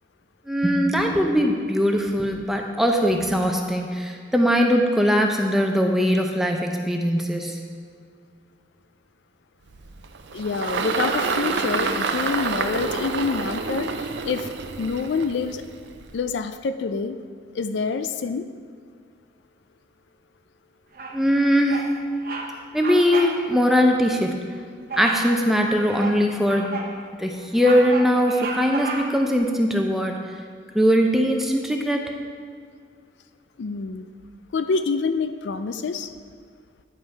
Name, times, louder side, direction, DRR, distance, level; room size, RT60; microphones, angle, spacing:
voice 1, 0.5-7.6 21.1-21.9 22.7-24.4 25.0-26.7 27.2-30.1 30.7-32.0, equal, ahead, 2 dB, 0.5 m, -21 dB
Engine, 9.7-16.3, right 4 dB, 75° right, 0.5 m, -28 dB
voice 2, 10.3-15.6 16.1-17.2 17.5-18.5 33.6-34.1 34.5-36.1, left 4 dB, 80° left, 10 dB, 0.4 m, -27 dB
Bird vocalization bird call bird song, 20.9-21.3 21.7-21.9 22.2-22.5 22.8-23.4 23.7-23.8 24.9-25.3 25.8-26.9 27.4-29.3, right 3 dB, 50° right, 0.9 m, -32 dB
9.4 x 5.5 x 4.5 m, 2.1 s
head